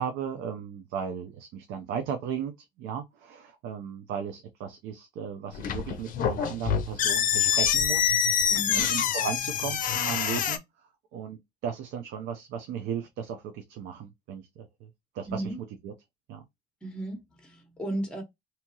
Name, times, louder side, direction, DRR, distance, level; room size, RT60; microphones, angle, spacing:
voice 1, 0.0-2.5 2.8-10.6 11.1-14.9 15.1-15.5 15.8-15.9 16.3-16.4, right 7 dB, 90° right, 0.5 m, -36 dB
sound 1, 5.5-10.6, left 9 dB, 55° left, 0.5 m, -26 dB
voice 2, 8.5-8.9 15.3-15.6 16.8-18.2, right 1 dB, 5° left, 0.9 m, -34 dB
2.8 x 2.3 x 2.8 m
cardioid pair, 110°, 17 cm